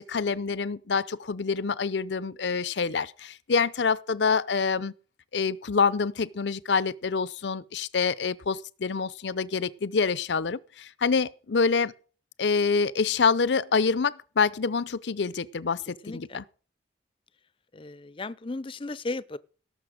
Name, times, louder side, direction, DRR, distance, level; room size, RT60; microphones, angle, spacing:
voice 1, 0.0-4.9 5.3-11.9 12.4-16.4, left 5 dB, 70° left, 0.6 m, -26 dB
voice 2, 16.0-16.4 17.7-19.4, left 2 dB, 30° left, 0.5 m, -35 dB
17.5 x 6.7 x 6.4 m
head